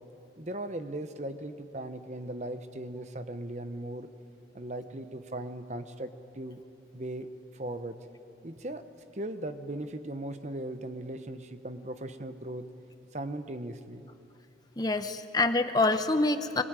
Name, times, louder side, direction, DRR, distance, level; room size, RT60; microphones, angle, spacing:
voice 1, 0.4-4.1 4.5-6.6 6.9-8.0 8.4-8.9 9.1-12.7 13.1-14.1, right 1 dB, 40° right, 10 dB, 0.9 m, -38 dB
voice 2, 14.8-16.6, left 2 dB, 20° left, 9 dB, 0.8 m, -26 dB
23.0 x 20.0 x 9.0 m, 2.8 s
head